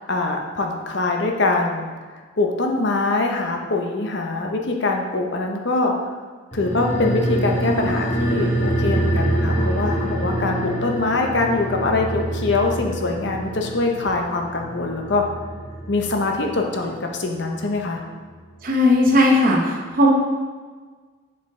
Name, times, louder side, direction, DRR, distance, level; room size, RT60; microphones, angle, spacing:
voice 1, 0.0-1.9 2.4-5.9 6.5-15.2 15.9-18.0, left 3 dB, 55° left, 2 dB, 0.7 m, -23 dB
sound 1, 6.5-17.4 17.7-17.8, right 1 dB, 35° left, 1.5 m, -26 dB
voice 2, 18.6-20.1, left 1 dB, 45° right, -1 dB, 1.0 m, -17 dB
7.3 x 4.8 x 3.7 m, 1.5 s
head